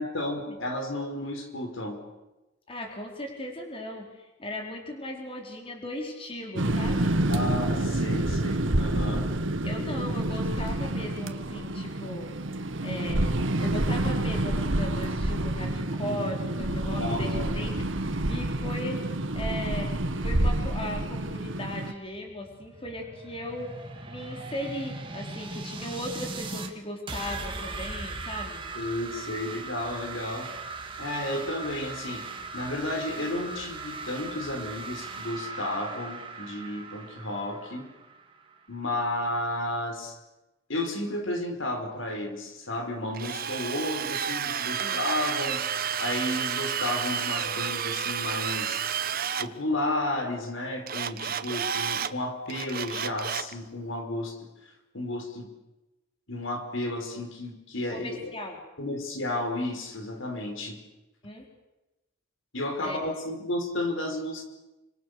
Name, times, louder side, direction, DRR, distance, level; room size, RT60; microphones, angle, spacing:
voice 1, 0.0-2.0 7.3-9.3 16.0-16.2 16.6-16.7 17.0-17.6 28.7-30.5 31.0-32.2 32.5-37.9 38.7-40.2 40.7-45.6 46.0-48.8 49.4-54.5 54.9-55.5 56.3-58.3 58.8-60.8 62.5-64.4, left 1 dB, 70° left, 5 dB, 5.1 m, -32 dB
voice 2, 2.7-7.2 9.6-12.3 12.8-17.7 18.0-19.0 19.3-19.9 20.2-23.7 24.1-28.6 44.8-45.0 57.9-58.6 61.2-61.4 62.8-63.0, left 1 dB, 25° left, 1 dB, 4.6 m, -37 dB
sound 1, 6.6-21.9, right 1 dB, 65° right, 1.7 m, -28 dB
sound 2, 22.1-26.7 27.1-38.6, right 3 dB, 25° right, 3.0 m, -39 dB
Drill, 43.1-49.5 50.9-52.1 52.5-53.5, right 8 dB, 45° right, 1.1 m, -31 dB
30.0 x 26.0 x 6.9 m, 1.0 s
head